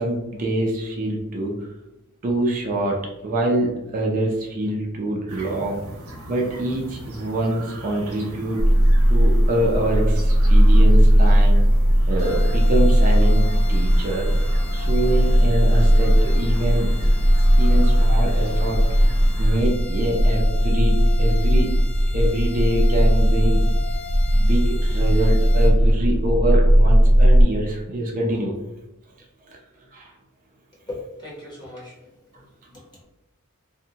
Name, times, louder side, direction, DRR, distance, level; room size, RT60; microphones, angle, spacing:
voice 1, 0.0-1.6 2.2-5.8 6.3-8.6 9.1-11.6 12.0-14.3 14.7-16.9 17.3-18.8 19.4-21.7 22.1-23.7 24.3-28.5 29.5-29.6 29.9-30.1 32.3-32.4, right 1 dB, 40° right, -1 dB, 0.4 m, -25 dB
sound 1, 5.3-19.6, right 1 dB, 90° right, 0.7 m, -39 dB
sound 2, 8.6-27.4, equal, 40° left, 0.3 m, -17 dB
sound 3, 12.2-25.7, left 7 dB, 70° left, 0.7 m, -38 dB
voice 2, 30.9-32.2 32.7-32.8, left 2 dB, 20° left, -6 dB, 0.9 m, -37 dB
2.6 x 2.1 x 2.7 m, 0.98 s
head